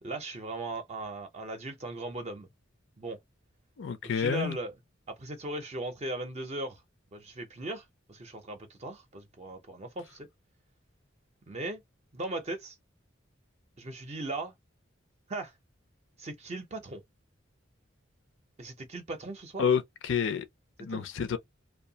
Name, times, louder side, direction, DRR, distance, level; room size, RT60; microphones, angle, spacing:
voice 1, 0.0-2.5 3.0-3.2 4.1-4.7 5.1-6.8 7.1-10.3 11.5-11.8 12.1-12.8 13.8-14.5 15.3-15.5 16.2-17.0 18.6-19.6 20.9-21.1, right 2 dB, 35° right, 0.5 m, -38 dB
voice 2, 3.8-4.6 19.6-20.4 20.8-21.4, left 6 dB, 65° left, 0.5 m, -29 dB
2.6 x 2.2 x 2.7 m
head